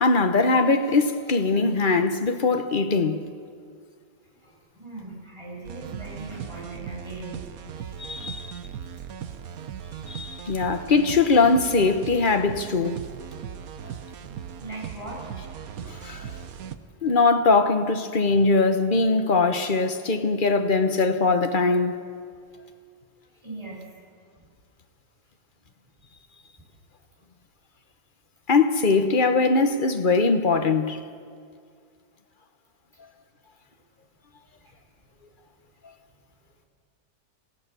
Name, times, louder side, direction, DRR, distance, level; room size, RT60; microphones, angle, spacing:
voice 1, 0.0-3.2 8.0-8.5 10.1-13.0 15.8-16.3 17.0-21.9 28.5-31.0, left 3 dB, 35° left, 0.8 m, -21 dB
voice 2, 4.4-7.4 14.1-15.3 23.4-23.9 34.6-34.8, right 2 dB, 15° right, 7.0 m, -40 dB
sound 1, 5.6-16.8, right 8 dB, 55° right, 1.2 m, -38 dB
28.0 x 15.5 x 6.9 m
omnidirectional pair, 2.1 m